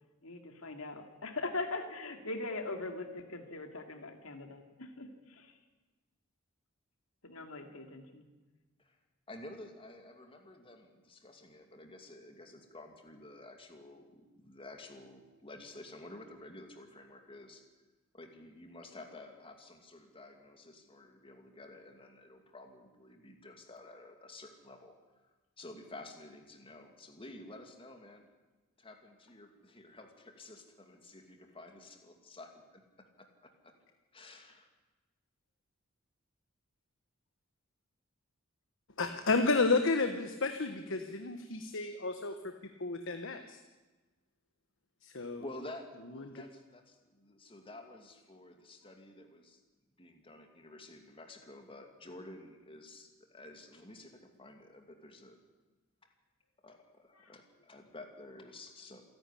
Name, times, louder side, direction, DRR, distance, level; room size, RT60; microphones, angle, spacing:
voice 1, 0.2-5.5 7.2-8.2 57.1-57.3, left 3 dB, 80° left, 5 dB, 2.7 m, -41 dB
voice 2, 9.3-10.8 11.1-17.6 18.1-24.9 25.6-28.2 28.8-29.5 29.7-32.5 34.1-34.6 45.4-46.8 47.3-49.4 50.0-53.1 53.3-54.1 54.4-55.4 56.6-56.8 57.3-57.4 57.7-59.0, left 2 dB, 25° left, 4 dB, 2.6 m, -51 dB
voice 3, 39.0-42.3 42.8-43.6 45.0-45.5 46.0-46.4, left 3 dB, 65° left, 6 dB, 1.3 m, -31 dB
27.0 x 11.5 x 10.0 m, 1.2 s
head